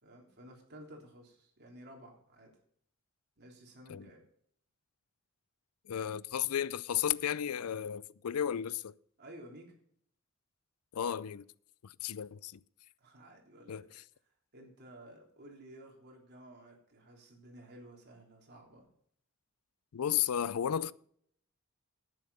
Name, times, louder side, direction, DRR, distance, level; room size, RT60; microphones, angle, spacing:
voice 1, 0.0-2.5 3.4-4.2 9.2-9.7 13.0-13.9 14.5-18.9, right 1 dB, 50° right, 3.5 m, -53 dB
voice 2, 5.9-8.9 10.9-11.5 11.8-12.6 13.7-14.0 19.9-20.9, left 9 dB, 85° left, 0.4 m, -34 dB
11.0 x 9.5 x 5.5 m
head